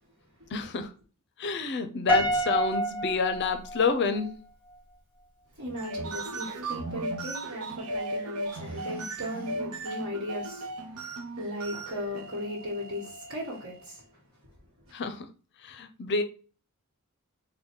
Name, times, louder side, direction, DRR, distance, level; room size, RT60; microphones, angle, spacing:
voice 1, 0.5-0.9 1.4-4.4 14.9-15.3 15.6-16.2, left 4 dB, 50° left, 0.5 m, -28 dB
Piano, 2.1-4.3, right 1 dB, 10° right, 1.2 m, -28 dB
voice 2, 5.6-14.1, equal, 65° right, 1.4 m, -37 dB
sound 1, 5.6-13.9, right 2 dB, 85° right, 0.6 m, -37 dB
3.9 x 2.2 x 3.6 m
head